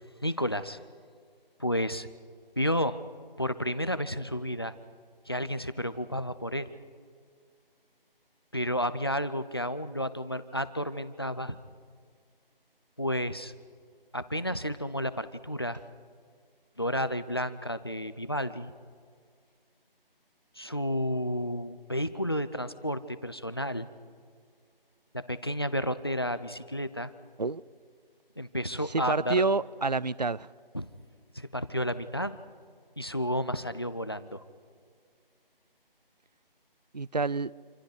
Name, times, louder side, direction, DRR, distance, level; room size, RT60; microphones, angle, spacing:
voice 1, 0.2-0.8 1.6-2.1 2.6-3.0 3.4-4.7 5.3-6.7 8.5-11.6 13.0-13.5 14.1-15.8 16.8-18.7 20.6-23.9 25.1-27.1 28.4-29.4 30.7-30.9 31.3-32.4 33.0-34.4, equal, 25° left, 0.6 m, -31 dB
voice 2, 28.9-30.5 36.9-37.5, right 3 dB, 45° right, 0.5 m, -28 dB
27.5 x 26.5 x 4.9 m
figure-of-eight pair, 175°, 29 cm